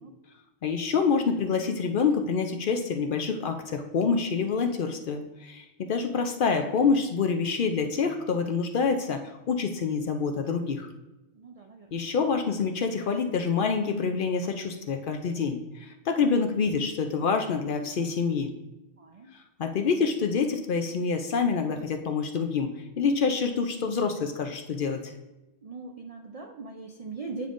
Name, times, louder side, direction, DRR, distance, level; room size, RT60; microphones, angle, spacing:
voice 1, 0.6-10.9 11.9-18.5 19.6-25.1, left 5 dB, 60° left, 5 dB, 0.6 m, -27 dB
voice 2, 11.4-11.9 19.0-19.3 25.6-27.5, right 4 dB, 60° right, 3 dB, 0.4 m, -40 dB
9.1 x 5.2 x 2.5 m, 0.99 s
omnidirectional pair, 1.2 m